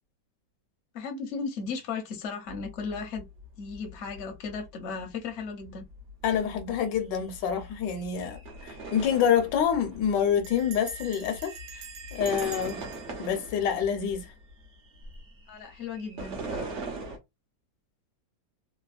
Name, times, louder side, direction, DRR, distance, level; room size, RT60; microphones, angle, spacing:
voice 1, 0.9-3.3 3.6-5.8 15.5-16.7, left 5 dB, 55° left, 0.8 m, -36 dB
sound 1, 2.5-17.2, right 2 dB, 50° right, 0.9 m, -42 dB
voice 2, 6.2-11.8 12.1-12.8 13.2-14.3, left 8 dB, 75° left, 1.3 m, -27 dB
Bell, 8.3-8.7 9.0-9.1 9.3-9.7 10.4-14.5, right 6 dB, 80° right, 0.7 m, -45 dB
3.4 x 2.1 x 2.3 m
omnidirectional pair, 2.0 m